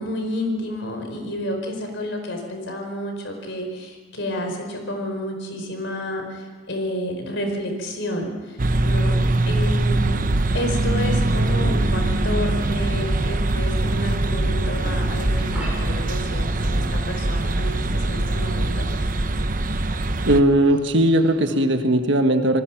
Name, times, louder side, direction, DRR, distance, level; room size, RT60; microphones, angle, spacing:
voice 1, 0.0-10.3 10.5-18.9, left 1 dB, 60° left, 4 dB, 4.7 m, -30 dB
sound 1, 8.6-20.4, right 2 dB, 40° right, 1.0 m, -22 dB
sound 2, 14.8-21.6, right 1 dB, 5° right, 6.4 m, -44 dB
voice 2, 20.3-22.6, right 1 dB, 60° right, 6 dB, 1.6 m, -18 dB
27.0 x 19.5 x 6.0 m, 1.4 s
head